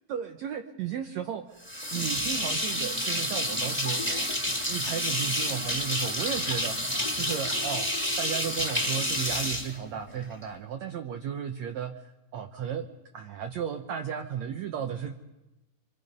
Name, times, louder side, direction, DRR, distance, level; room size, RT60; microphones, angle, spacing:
voice 1, 0.1-4.3 4.6-7.9 8.2-12.9 13.1-15.2, right 8 dB, 85° right, 5 dB, 1.6 m, -34 dB
sound 1, 1.6-10.4, equal, 5° left, 2.1 m, -29 dB
26.0 x 25.0 x 5.4 m, 0.98 s
omnidirectional pair, 4.4 m